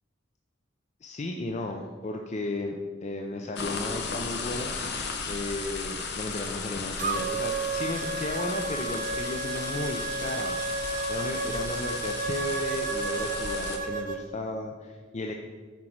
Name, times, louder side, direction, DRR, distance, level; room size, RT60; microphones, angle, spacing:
voice 1, 1.0-4.7 5.2-10.5 11.1-15.3, left 2 dB, 35° left, 3 dB, 0.5 m, -34 dB
sound 1, 3.6-13.8, left 4 dB, 60° left, 0.8 m, -35 dB
sound 2, 7.0-14.2, right 4 dB, 45° right, 0.5 m, -32 dB
8.0 x 4.9 x 4.5 m, 1.5 s
head